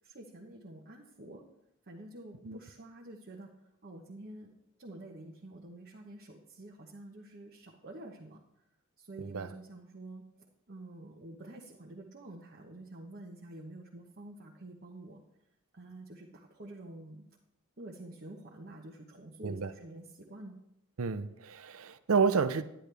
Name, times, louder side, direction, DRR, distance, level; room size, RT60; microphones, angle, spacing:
voice 1, 0.0-1.4 1.9-3.5 3.8-8.4 9.0-10.2 10.7-15.2 15.7-17.3 17.8-20.6, right 1 dB, 45° right, 1.1 m, -48 dB
voice 2, 9.2-9.5 19.4-19.7 21.0-22.6, right 5 dB, 75° right, 0.6 m, -30 dB
11.0 x 10.0 x 3.4 m
head